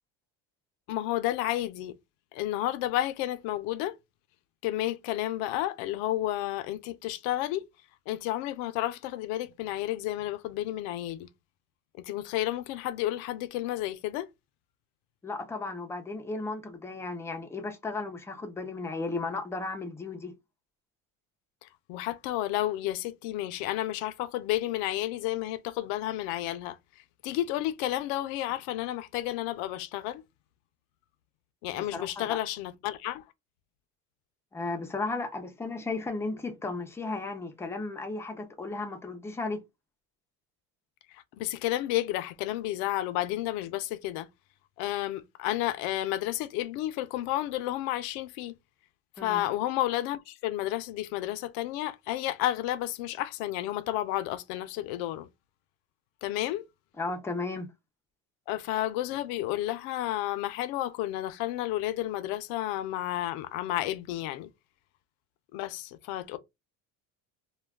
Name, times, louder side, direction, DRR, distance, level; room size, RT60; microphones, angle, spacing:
voice 1, 0.9-1.9 2.3-4.0 4.6-7.7 8.1-11.3 12.0-14.3 21.6-26.8 27.2-30.2 31.6-33.2 41.1-44.3 44.8-48.5 49.2-55.3 56.2-56.6 58.5-64.5 65.5-66.4, left 14 dB, 75° left, 0.5 m, -31 dB
voice 2, 15.2-20.4 31.9-32.4 34.5-39.6 49.2-49.5 57.0-57.7, left 3 dB, 10° left, 0.4 m, -35 dB
2.3 x 2.2 x 3.3 m
cardioid pair, 130°, 37 cm